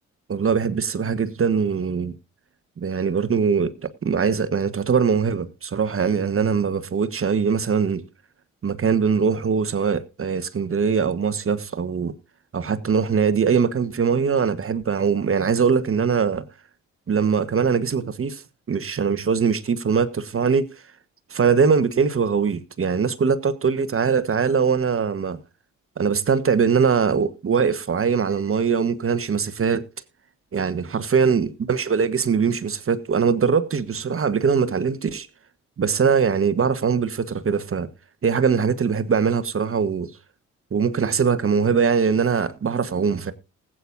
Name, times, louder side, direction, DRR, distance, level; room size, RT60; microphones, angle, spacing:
voice 1, 0.3-2.2 2.8-8.0 8.6-12.2 12.5-16.5 17.1-18.4 18.7-20.7 21.3-25.4 26.0-29.8 30.5-35.3 35.8-37.9 38.2-40.1 40.7-43.3, right 6 dB, 40° right, 1.3 m, -22 dB
20.0 x 8.8 x 2.6 m
hypercardioid pair, 45°, 35 cm